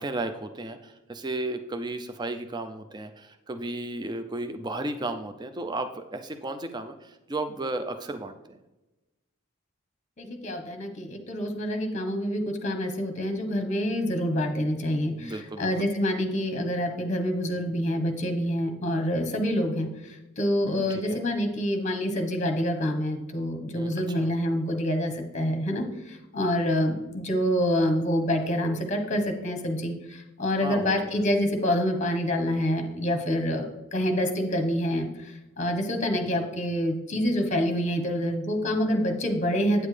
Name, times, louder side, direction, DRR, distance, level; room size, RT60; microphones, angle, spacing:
voice 1, 0.0-8.4 15.2-15.9 20.7-21.2 23.8-24.3 30.6-31.1, right 2 dB, 20° right, 8 dB, 0.4 m, -34 dB
voice 2, 10.2-19.9 20.4-39.9, equal, 35° left, 5 dB, 1.1 m, -27 dB
8.9 x 7.2 x 3.3 m, 1.0 s
head